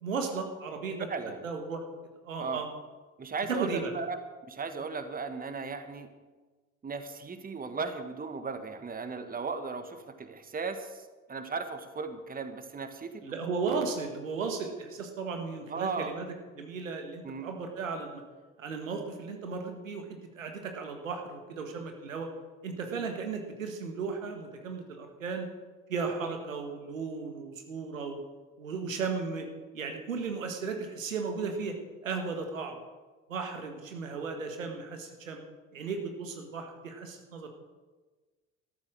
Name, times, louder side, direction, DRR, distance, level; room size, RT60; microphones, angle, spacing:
voice 1, 0.0-1.1 1.4-1.8 2.2-2.7 3.5-3.9 13.2-16.3 16.6-18.2 18.6-20.1 20.4-22.3 22.6-25.5 25.9-28.2 28.6-29.5 29.7-31.8 32.0-32.8 33.3-35.4 35.7-37.5, right 4 dB, 80° right, 4 dB, 1.7 m, -35 dB
voice 2, 1.1-1.4 2.4-2.6 3.2-4.2 4.4-6.1 6.8-13.7 15.7-16.1 17.2-17.5, right 4 dB, 20° right, 9 dB, 1.5 m, -36 dB
13.0 x 13.0 x 6.4 m, 1.3 s
figure-of-eight pair, 55°, 39 cm